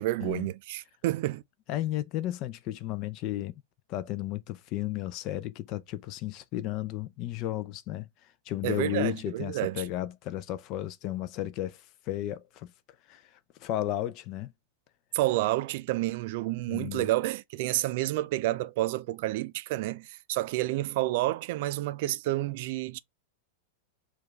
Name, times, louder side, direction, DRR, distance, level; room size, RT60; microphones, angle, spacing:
voice 1, 0.0-1.4 8.6-9.9 15.1-23.0, right 17 dB, 60° right, 0.3 m, -29 dB
voice 2, 1.7-3.5 3.9-12.7 13.1-14.5 16.7-17.1, left 13 dB, 45° left, 0.4 m, -34 dB
4.4 x 2.4 x 3.2 m
hypercardioid pair, 100°, 0 cm